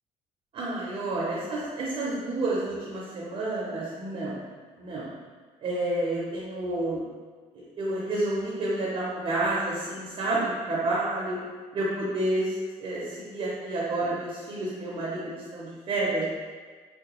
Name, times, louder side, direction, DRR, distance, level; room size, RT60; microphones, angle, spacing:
voice 1, 0.5-4.4 4.8-5.1 5.6-7.0 7.5-11.4 11.7-16.2, right 2 dB, 40° right, -6 dB, 0.5 m, -29 dB
3.5 x 2.2 x 2.9 m, 1.5 s
cardioid pair, 170°, 13 cm